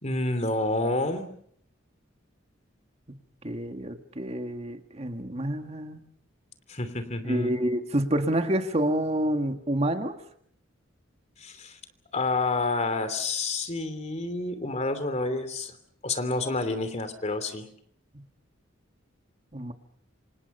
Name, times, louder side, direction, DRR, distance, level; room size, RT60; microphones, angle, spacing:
voice 1, 0.0-1.3 6.7-7.5 11.4-11.8 12.1-15.7 16.0-17.6, left 2 dB, 35° left, 10 dB, 2.9 m, -29 dB
voice 2, 3.4-6.0 7.2-10.1 18.1-18.2 19.5-19.7, right 1 dB, 35° right, 6 dB, 1.8 m, -28 dB
27.5 x 26.5 x 5.5 m, 0.66 s
head